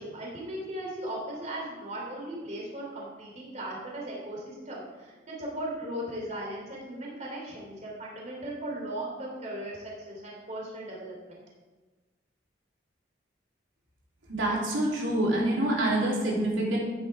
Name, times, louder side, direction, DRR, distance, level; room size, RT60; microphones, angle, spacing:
voice 1, 0.0-11.1, right 1 dB, 35° right, -3 dB, 3.4 m, -37 dB
voice 2, 14.3-16.8, right 1 dB, 80° right, -5 dB, 3.4 m, -26 dB
14.0 x 10.0 x 3.6 m, 1.3 s
head